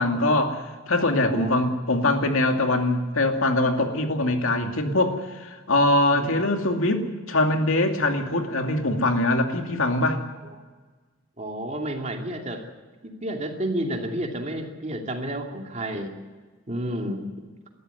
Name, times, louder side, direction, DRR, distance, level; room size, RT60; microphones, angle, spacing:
voice 1, 0.0-10.2, left 2 dB, 75° left, 4 dB, 2.5 m, -23 dB
voice 2, 1.2-1.5 6.1-6.3 10.4-10.6 11.4-12.6 13.0-16.1 16.7-17.3, right 1 dB, 35° right, 2 dB, 2.6 m, -31 dB
20.0 x 14.0 x 9.5 m, 1.3 s
head